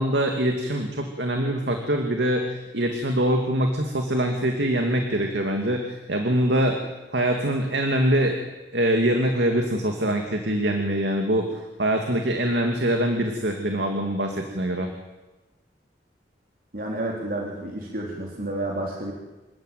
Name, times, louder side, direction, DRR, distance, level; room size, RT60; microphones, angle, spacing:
voice 1, 0.0-6.8 7.1-8.4 8.7-14.9, right 1 dB, 75° right, 3 dB, 2.6 m, -24 dB
voice 2, 16.7-19.1, right 1 dB, 50° right, -2 dB, 3.9 m, -30 dB
27.5 x 14.5 x 9.3 m, 1.1 s
head